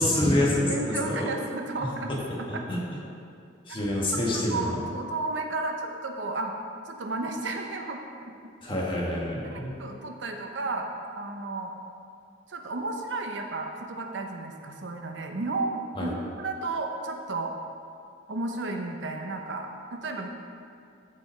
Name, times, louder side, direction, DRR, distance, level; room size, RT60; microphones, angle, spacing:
voice 1, 0.0-1.3 2.5-2.8 3.7-4.8 8.6-9.8 16.0-16.1, left 1 dB, 25° left, -4 dB, 1.7 m, -26 dB
voice 2, 0.7-2.1 2.4-2.6 3.7-3.8 4.1-6.5 6.9-8.3 9.5-10.9 11.2-11.7 12.5-17.5 18.3-20.3, right 3 dB, 70° right, 3 dB, 0.9 m, -33 dB
14.0 x 5.3 x 4.5 m, 2.4 s
head